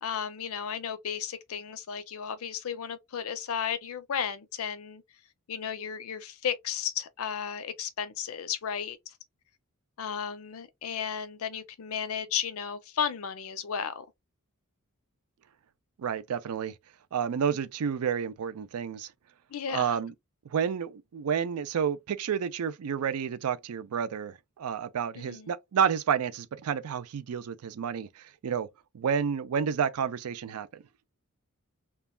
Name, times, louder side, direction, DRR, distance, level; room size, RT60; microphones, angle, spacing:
voice 1, 0.0-5.0 5.5-9.0 10.0-14.1 19.5-20.0 25.1-25.5, left 7 dB, 70° left, 0.5 m, -34 dB
voice 2, 16.0-16.7 17.1-19.1 19.7-20.1 20.5-28.7 28.9-30.8, right 7 dB, 80° right, 0.4 m, -30 dB
3.1 x 2.3 x 2.2 m
head